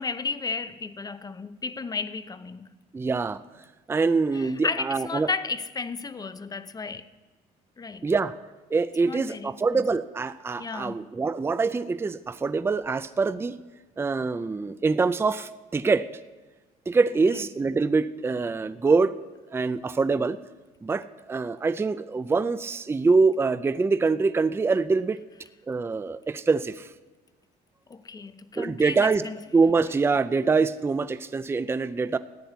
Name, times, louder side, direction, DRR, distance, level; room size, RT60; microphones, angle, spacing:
voice 1, 0.0-2.7 4.3-7.1 7.8-8.1 9.1-9.8 10.6-11.0 17.3-17.4 27.9-29.4, left 4 dB, 20° left, 0.7 m, -33 dB
voice 2, 2.9-3.4 3.9-5.3 8.0-8.3 8.7-13.6 14.0-16.1 16.9-19.1 19.5-20.4 20.8-25.2 25.7-26.9 28.6-29.2 29.5-32.2, right 4 dB, 15° right, 0.4 m, -24 dB
14.0 x 10.0 x 8.1 m
cardioid pair, 110°, 17 cm